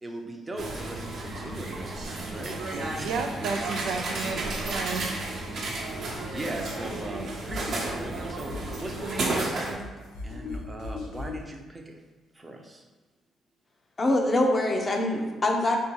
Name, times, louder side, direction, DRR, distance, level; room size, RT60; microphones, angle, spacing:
voice 1, 0.0-2.6 3.0-3.2 6.3-9.9 10.2-12.0 12.3-12.8, right 1 dB, 25° right, 2 dB, 0.6 m, -39 dB
sound 1, 0.6-9.7, right 2 dB, 60° right, 0.9 m, -33 dB
voice 2, 2.7-5.2, right 5 dB, 85° right, 5 dB, 0.3 m, -33 dB
sound 2, 6.1-11.5, left 3 dB, 75° left, 0.6 m, -40 dB
voice 3, 14.0-15.8, left 1 dB, 30° left, 2 dB, 0.6 m, -24 dB
3.3 x 2.7 x 4.6 m, 1.3 s
cardioid pair, 90°, 0 cm